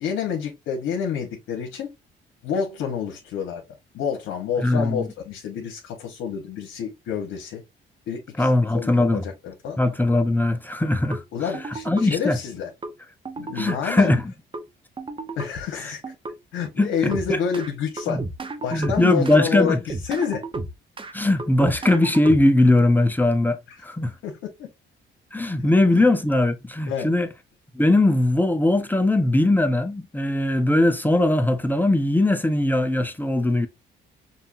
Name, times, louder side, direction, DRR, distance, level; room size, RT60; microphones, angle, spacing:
voice 1, 0.0-1.9 2.4-3.6 3.9-7.6 8.1-9.8 11.3-12.7 13.4-14.2 15.3-16.0 16.5-18.2 18.6-20.4 23.7-23.8 24.2-24.7 25.9-26.0 26.9-27.1, left 7 dB, 85° left, 1.1 m, -28 dB
voice 2, 4.6-5.1 8.4-9.2 9.8-12.4 13.5-14.2 15.7-15.9 16.8-17.4 18.1-18.2 18.7-19.8 21.1-24.1 25.3-27.3 27.7-33.7, left 1 dB, 10° left, 0.7 m, -20 dB
sound 1, 11.1-11.2 11.5-12.1 12.8-12.9 13.3-13.8 14.5-14.6 15.0-15.5 16.0-16.3 17.1-17.7 18.0-19.4 19.7-21.1 21.4-22.7, right 3 dB, 25° right, 0.9 m, -32 dB
5.5 x 2.7 x 2.6 m
cardioid pair, 90°, 20 cm